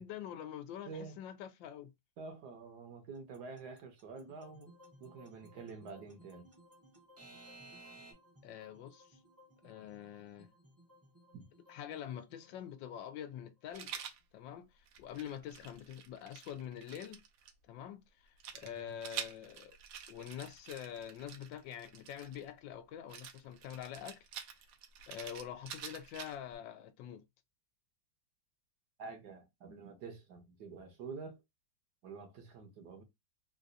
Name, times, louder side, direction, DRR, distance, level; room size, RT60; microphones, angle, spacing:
voice 1, 0.0-1.9 8.4-9.2 9.6-10.5 11.7-14.0 14.3-14.7 15.0-17.2 17.7-19.7 20.1-24.2 25.1-27.2, left 10 dB, 80° left, 1.3 m, -45 dB
voice 2, 0.9-1.2 2.2-4.7 5.0-6.4 11.3-11.4 18.6-18.9 29.0-31.4 32.0-33.0, right 4 dB, 65° right, 1.3 m, -48 dB
Alarm / Clock, 3.3-8.1, right 2 dB, 10° right, 0.7 m, -54 dB
sound 1, 4.2-14.4, left 1 dB, 30° right, 0.3 m, -63 dB
Rattle, 13.7-14.2 14.9-17.5 18.4-22.5 23.1-26.6, right 8 dB, 85° right, 1.4 m, -47 dB
3.8 x 2.4 x 2.6 m
omnidirectional pair, 2.0 m